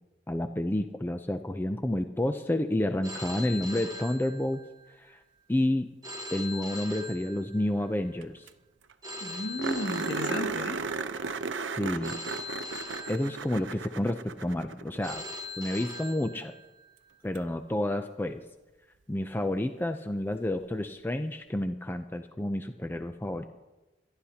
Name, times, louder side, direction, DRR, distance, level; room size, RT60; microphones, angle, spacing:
voice 1, 0.3-4.6 5.0-5.2 5.5-5.9 6.3-8.5 11.8-12.2 13.1-15.3 15.6-16.5 17.2-18.4 19.1-23.4, left 1 dB, 10° left, 7 dB, 0.5 m, -30 dB
Telephone, 3.0-4.9 6.0-7.9 9.0-10.9 12.0-13.9 15.0-16.9, left 2 dB, 20° right, 1.2 m, -41 dB
sound 1, 8.2-8.3 8.5-8.6 8.9-9.0 9.6-15.0 17.4-17.5 20.3-20.4, right 4 dB, 85° right, 0.7 m, -34 dB
voice 2, 9.2-10.8, left 1 dB, 65° left, 2 dB, 2.1 m, -34 dB
26.0 x 11.5 x 2.9 m, 1.1 s
head